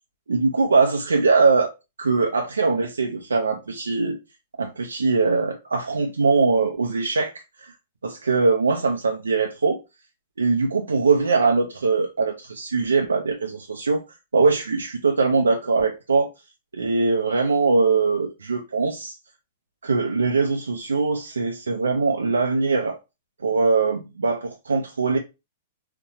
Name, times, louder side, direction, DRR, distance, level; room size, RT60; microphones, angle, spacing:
voice 1, 0.3-1.7 2.0-4.2 4.6-7.3 7.6-7.7 8.0-9.8 10.4-14.0 14.3-16.3 16.7-19.2 19.8-23.0 23.4-25.2, right 4 dB, 85° right, 0.5 m, -21 dB
4.0 x 2.2 x 2.8 m
hypercardioid pair, 110°, 0 cm